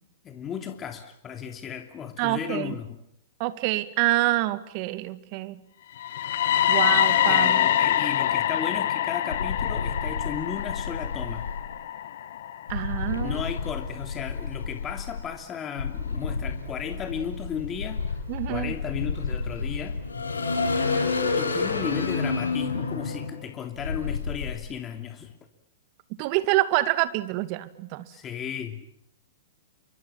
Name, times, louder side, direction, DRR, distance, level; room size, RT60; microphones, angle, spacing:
voice 1, 0.2-3.0 7.3-11.5 13.2-18.2 18.5-20.0 21.4-25.3 28.1-28.9, left 8 dB, 25° left, 6 dB, 2.9 m, -35 dB
voice 2, 2.2-2.7 3.4-5.6 6.7-7.6 12.7-13.4 18.3-18.7 26.2-28.1, right 17 dB, 45° right, 13 dB, 2.1 m, -26 dB
sound 1, 6.0-13.9, left 10 dB, 60° left, 1.8 m, -25 dB
sound 2, 9.3-11.6 12.7-15.2 15.8-24.5, left 4 dB, 85° left, 6.6 m, -30 dB
29.5 x 25.0 x 7.5 m, 0.70 s
hypercardioid pair, 110°, 0 cm